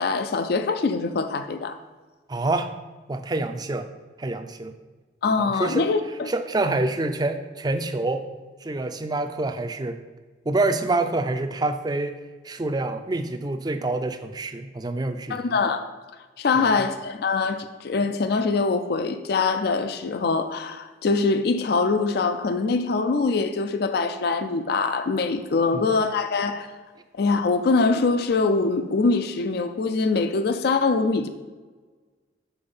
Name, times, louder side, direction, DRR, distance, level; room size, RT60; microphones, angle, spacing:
voice 1, 0.0-1.8 5.2-6.3 15.3-15.9 16.4-26.7 27.2-31.3, left 4 dB, 60° left, 10 dB, 0.4 m, -23 dB
voice 2, 2.3-2.7 3.1-3.9 4.2-4.8 5.4-5.9 6.3-8.3 8.6-10.0 10.5-12.2 12.4-15.6 16.5-16.9 25.7-25.8, right 2 dB, 20° right, 8 dB, 0.4 m, -27 dB
7.0 x 4.3 x 5.4 m, 1.3 s
head